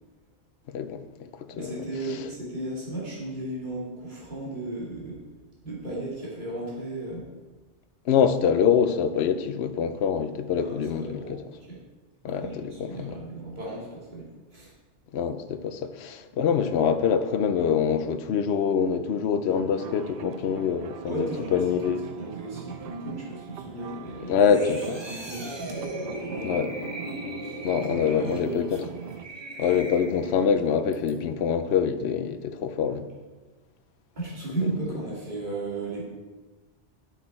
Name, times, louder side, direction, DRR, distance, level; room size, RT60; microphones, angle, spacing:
voice 1, 0.7-1.7 8.1-11.2 12.2-13.2 15.1-22.0 24.3-25.0 26.4-26.7 27.6-28.8 29.6-33.0, left 7 dB, 70° left, 0.9 m, -25 dB
voice 2, 1.5-5.2 5.6-7.3 10.6-11.8 12.2-14.7 21.0-24.5 24.8-26.7 27.4-28.6 34.1-36.1, right 2 dB, 40° right, 2.7 m, -35 dB
sound 1, 19.5-29.3, right 8 dB, 60° right, 0.7 m, -42 dB
sound 2, 24.4-30.5 30.9-31.1, right 1 dB, 25° right, 1.1 m, -37 dB
12.0 x 6.8 x 4.4 m
omnidirectional pair, 1.2 m